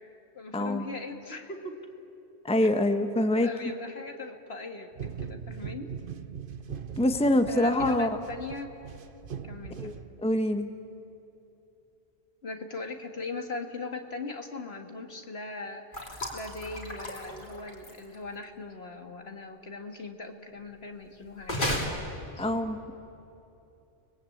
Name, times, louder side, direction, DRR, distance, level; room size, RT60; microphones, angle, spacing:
voice 1, 0.0-1.9 2.6-2.7 3.4-5.9 7.5-8.7 9.4-10.0 12.4-21.9 22.4-22.5, left 3 dB, 65° left, 5 dB, 2.1 m, -39 dB
voice 2, 0.5-0.8 2.4-3.5 7.0-8.1 9.8-9.9 10.2-10.7 22.4-22.9, left 1 dB, 5° left, 8 dB, 1.0 m, -25 dB
sound 1, 4.9-10.5, right 7 dB, 55° right, 1.0 m, -41 dB
sound 2, 15.9-18.2 21.4-21.9, left 1 dB, 50° left, 3.5 m, -33 dB
30.0 x 21.0 x 8.6 m, 2.9 s
omnidirectional pair, 1.1 m